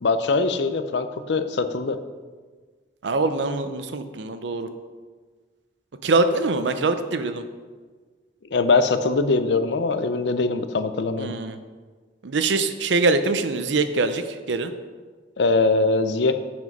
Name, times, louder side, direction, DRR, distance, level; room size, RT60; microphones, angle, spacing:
voice 1, 0.0-2.0 8.5-11.3 15.4-16.4, left 3 dB, 65° left, 10 dB, 0.6 m, -22 dB
voice 2, 3.0-4.7 6.0-7.4 11.2-11.6 12.2-14.7, right 3 dB, 75° right, 10 dB, 0.6 m, -23 dB
7.6 x 6.1 x 5.3 m, 1.5 s
head